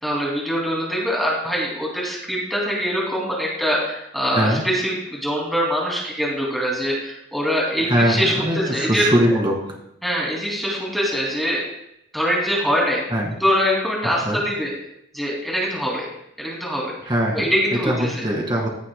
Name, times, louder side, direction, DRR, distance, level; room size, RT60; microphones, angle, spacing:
voice 1, 0.0-9.0 10.0-11.6 12.1-13.0 13.4-14.7 15.1-16.1 16.4-16.9 17.3-18.2, equal, ahead, -4 dB, 2.6 m, -23 dB
voice 2, 7.8-9.5 13.1-13.3 14.2-14.4 17.0-17.4 17.9-18.7, equal, 25° right, 0 dB, 2.1 m, -21 dB
16.0 x 8.7 x 2.3 m, 0.78 s
head